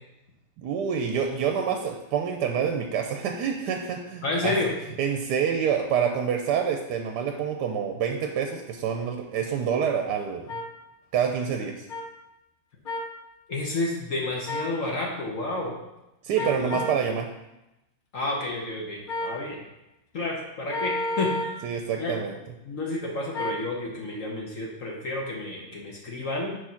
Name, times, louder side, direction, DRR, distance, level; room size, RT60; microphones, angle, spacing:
voice 1, 0.6-4.5 5.0-10.5 11.1-11.7 16.2-17.3 21.6-22.4, right 7 dB, 75° right, 3 dB, 1.2 m, -27 dB
voice 2, 4.2-4.7 13.5-15.7 16.4-16.8 18.1-19.6 20.1-21.7 22.0-22.1 22.6-26.6, left 2 dB, 55° left, -2 dB, 1.2 m, -30 dB
sound 1, 10.5-10.6 11.9-12.0 12.9-13.1 14.5-14.7 16.4-17.0 19.1-19.4 20.7-21.6 23.3-23.6, left 1 dB, 85° left, 0.4 m, -30 dB
4.7 x 4.6 x 5.7 m, 0.95 s
omnidirectional pair, 1.9 m